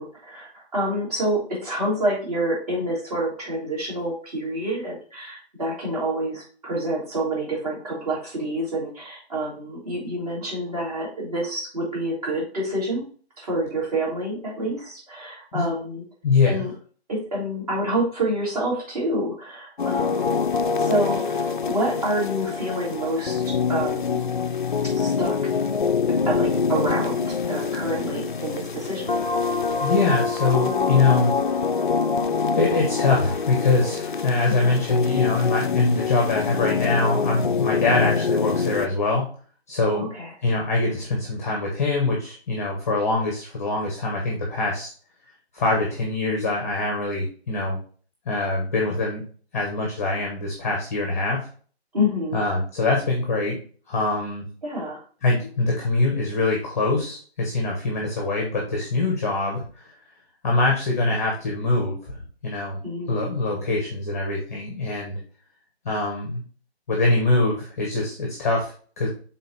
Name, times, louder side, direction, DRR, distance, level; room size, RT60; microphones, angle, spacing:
voice 1, 0.0-13.0 13.4-16.0 16.5-16.7 17.1-20.4 20.8-24.2 24.9-25.3 26.3-29.1 34.5-34.8 39.8-40.3 51.9-52.4 54.6-55.0 62.8-63.4, right 1 dB, 35° right, -4 dB, 3.5 m, -28 dB
voice 2, 16.2-16.7 29.8-31.3 32.5-39.2 39.7-40.1 40.4-44.9 45.5-47.8 48.2-49.2 49.5-51.5 52.3-53.6 53.9-54.4 55.2-59.9 60.4-62.8 63.1-65.2 65.8-66.4 66.9-69.1, left 3 dB, 15° left, -1 dB, 0.9 m, -23 dB
sound 1, 19.8-38.9, left 5 dB, 50° left, 0.5 m, -25 dB
6.4 x 3.9 x 4.2 m, 0.42 s
figure-of-eight pair, 165°, 33 cm